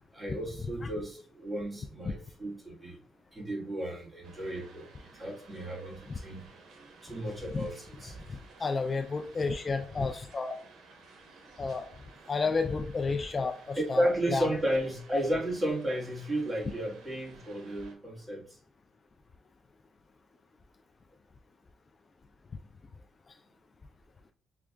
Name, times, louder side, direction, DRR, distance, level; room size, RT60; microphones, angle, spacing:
voice 1, 0.1-3.0 3.3-6.5 7.0-8.4 12.2-12.3 13.7-18.6, right 1 dB, 20° right, -2 dB, 1.4 m, -33 dB
sound 1, 4.2-17.9, right 4 dB, 80° right, 0.8 m, -55 dB
voice 2, 8.6-10.5 11.6-11.9 12.3-14.5, left 4 dB, 35° left, 5 dB, 0.3 m, -31 dB
6.0 x 2.3 x 2.2 m, 0.43 s
cardioid pair, 100°, 0 cm